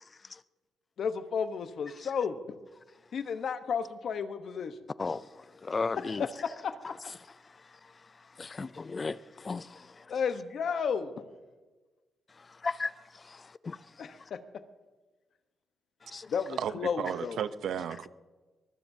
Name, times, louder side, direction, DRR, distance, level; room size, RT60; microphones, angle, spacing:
voice 1, 1.0-2.6 3.1-4.7 6.0-6.7 10.1-11.1 14.0-14.4 16.3-17.4, left 6 dB, 60° left, 1.0 m, -33 dB
voice 2, 5.6-6.3 8.4-9.2 9.4-9.7 12.6-12.9 13.6-13.8 16.1-16.3, left 4 dB, 30° left, 0.4 m, -33 dB
voice 3, 16.6-18.1, right 8 dB, 75° right, 0.7 m, -34 dB
23.0 x 20.5 x 2.8 m
cardioid pair, 100°, 0 cm